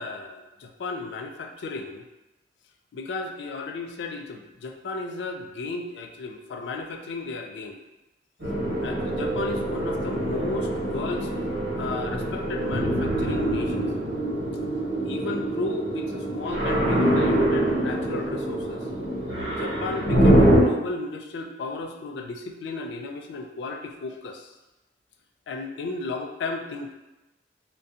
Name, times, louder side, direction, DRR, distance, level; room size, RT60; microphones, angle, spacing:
voice 1, 0.0-2.0 2.9-7.8 8.8-11.3 11.8-13.9 15.0-18.9 19.6-24.5 25.5-26.9, left 3 dB, 70° left, 5 dB, 0.3 m, -34 dB
sound 1, 8.4-20.6, right 1 dB, 70° right, 1.1 m, -24 dB
2.4 x 2.2 x 2.6 m, 1.0 s
head